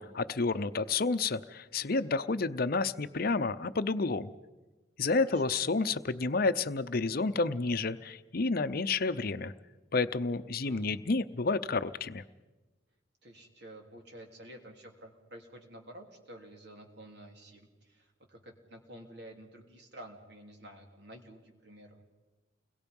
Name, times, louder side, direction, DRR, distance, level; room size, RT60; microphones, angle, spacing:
voice 1, 0.0-4.3 5.0-9.5 9.9-12.2, left 3 dB, 50° left, 12 dB, 0.7 m, -30 dB
voice 2, 5.2-5.6 10.6-11.0 13.2-22.0, right 1 dB, 60° right, 2 dB, 3.3 m, -51 dB
29.5 x 22.0 x 5.4 m, 1.2 s
head